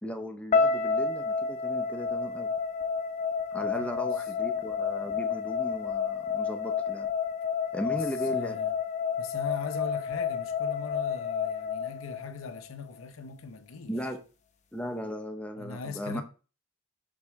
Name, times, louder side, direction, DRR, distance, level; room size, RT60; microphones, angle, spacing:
voice 1, 0.0-2.5 3.5-7.1 7.7-8.6 13.9-14.2 14.7-16.2, equal, 5° left, 0.8 m, -36 dB
sound 1, 0.5-12.7, left 6 dB, 35° left, 0.8 m, -30 dB
voice 2, 3.6-4.1 7.9-8.0 8.3-8.7 9.2-13.9 15.6-16.2, left 5 dB, 85° left, 0.8 m, -40 dB
6.1 x 4.9 x 3.5 m
head